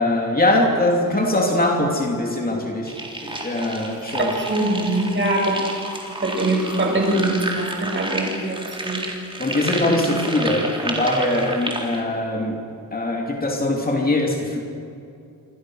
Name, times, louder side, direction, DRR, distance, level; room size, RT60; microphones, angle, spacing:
voice 1, 0.0-2.9 3.2-4.4 9.4-14.6, left 1 dB, 25° left, 0 dB, 3.0 m, -22 dB
sound 1, 2.9-12.0, right 1 dB, 15° right, 3.8 m, -30 dB
voice 2, 4.2-5.6 6.2-8.6 8.8-9.0, right 1 dB, 35° right, 0 dB, 6.9 m, -22 dB
27.5 x 26.0 x 6.4 m, 2.7 s
wide cardioid pair, 180°, 32 cm